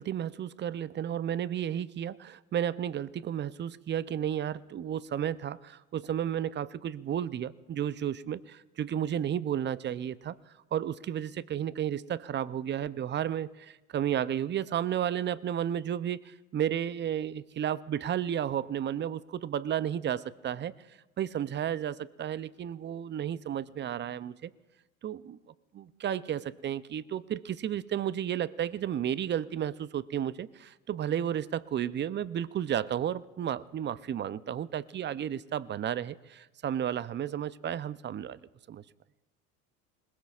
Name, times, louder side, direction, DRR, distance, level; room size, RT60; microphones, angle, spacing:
voice 1, 0.0-24.5 25.0-25.4 25.7-38.4 38.7-38.8, right 10 dB, 25° right, 18 dB, 0.5 m, -33 dB
26.0 x 21.0 x 2.4 m, 1.1 s
hypercardioid pair, 80°, 43 cm